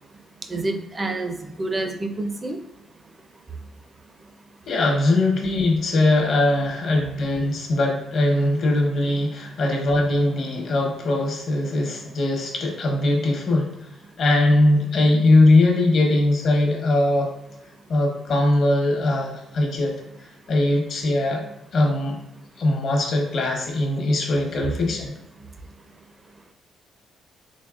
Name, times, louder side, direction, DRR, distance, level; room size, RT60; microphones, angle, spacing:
voice 1, 0.5-2.6, right 2 dB, 30° right, 6 dB, 0.5 m, -28 dB
voice 2, 4.7-13.7 14.2-17.3 17.9-19.9 20.5-21.4 21.7-22.2 22.6-25.1, left 2 dB, 60° left, 1 dB, 1.0 m, -20 dB
3.9 x 3.1 x 2.4 m, 0.86 s
cardioid pair, 90°, 0 cm